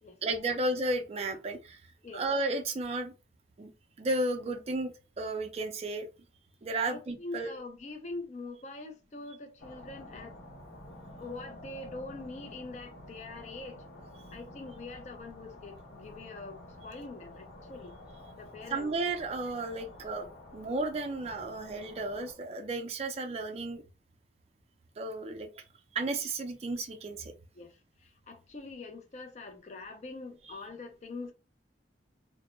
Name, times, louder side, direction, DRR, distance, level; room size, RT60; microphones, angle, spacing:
voice 1, 0.2-1.8 2.1-3.1 3.6-3.7 4.0-6.1 6.6-7.5 18.7-23.8 25.0-25.5 25.9-27.3, right 2 dB, 35° right, 0.3 m, -33 dB
voice 2, 6.9-10.3 10.9-13.8 14.3-18.0 18.3-18.9 19.6-19.9 20.2-20.3 27.5-31.3, left 3 dB, 40° left, 0.4 m, -44 dB
sound 1, 9.6-22.3, left 1 dB, 60° left, 0.8 m, -50 dB
2.1 x 2.0 x 3.0 m
head